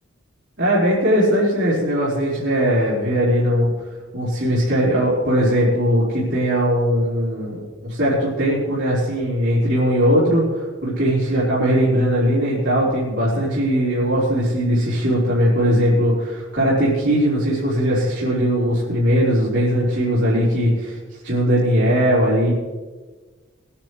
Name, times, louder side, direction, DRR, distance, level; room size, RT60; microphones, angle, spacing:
voice 1, 0.6-3.7 4.1-21.0 21.2-22.5, equal, 60° right, -9 dB, 4.3 m, -19 dB
22.5 x 10.0 x 3.3 m, 1.3 s
head